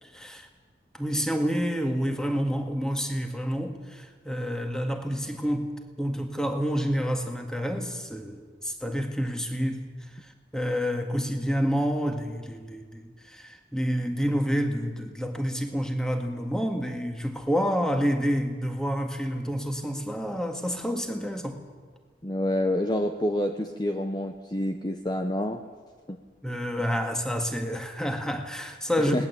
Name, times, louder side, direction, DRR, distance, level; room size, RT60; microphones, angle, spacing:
voice 1, 0.0-0.5 0.9-21.6 26.4-29.3, equal, 5° left, 4 dB, 1.9 m, -29 dB
voice 2, 22.2-25.6 26.1-26.2 29.0-29.3, left 1 dB, 25° left, 5 dB, 0.9 m, -28 dB
21.0 x 19.0 x 8.5 m, 1.5 s
head